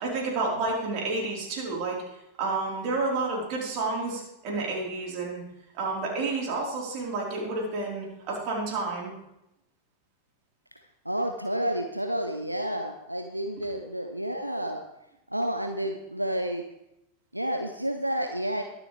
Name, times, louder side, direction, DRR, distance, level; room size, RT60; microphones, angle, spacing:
voice 1, 0.0-5.4 5.7-9.1, right 3 dB, 40° right, -3 dB, 4.4 m, -30 dB
voice 2, 11.0-14.8 15.3-16.6 17.3-18.6, equal, 90° right, 5 dB, 0.7 m, -30 dB
22.0 x 7.3 x 3.5 m, 0.87 s
figure-of-eight pair, 90°, 0 cm